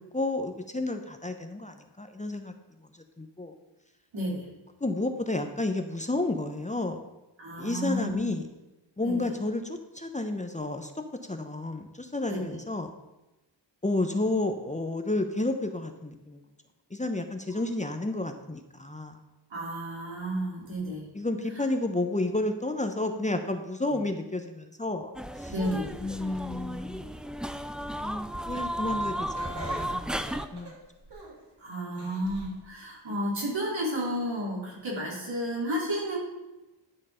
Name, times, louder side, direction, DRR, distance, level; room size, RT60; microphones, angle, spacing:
voice 1, 0.1-2.5 3.2-3.5 4.8-7.0 7.6-8.4 9.0-12.9 13.8-16.4 16.9-19.2 21.1-25.5 26.0-27.1 27.9-30.1 30.5-30.7, left 2 dB, 15° left, 6 dB, 0.8 m, -31 dB
voice 2, 4.1-4.5 7.4-8.3 9.0-9.1 12.3-12.6 17.5-17.6 19.5-21.1 23.8-24.0 25.5-25.9 31.6-36.2, equal, 75° right, -5 dB, 4.0 m, -32 dB
sound 1, 25.2-30.5, equal, ahead, 0.4 m, -34 dB
Laughter, 29.3-31.5 31.9-32.6 33.1-33.2 34.1-34.2, right 2 dB, 60° right, 3.0 m, -44 dB
11.0 x 6.4 x 5.0 m, 1.0 s
wide cardioid pair, 80°, 45 cm